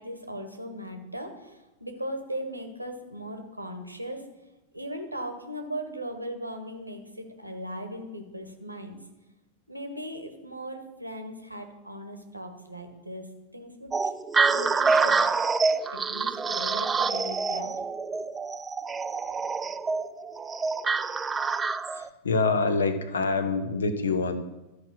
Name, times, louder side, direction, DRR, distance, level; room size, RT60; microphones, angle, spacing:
voice 1, 0.0-4.2 4.7-9.0 9.7-13.3 13.5-14.1 14.5-15.2 15.9-17.7, equal, 85° right, 5 dB, 1.2 m, -38 dB
sound 1, 13.9-22.1, right 4 dB, 15° right, 0.3 m, -26 dB
voice 2, 21.9-24.4, left 4 dB, 70° left, 11 dB, 0.8 m, -26 dB
12.5 x 4.9 x 6.0 m, 1.0 s
figure-of-eight pair, 90°, 0 cm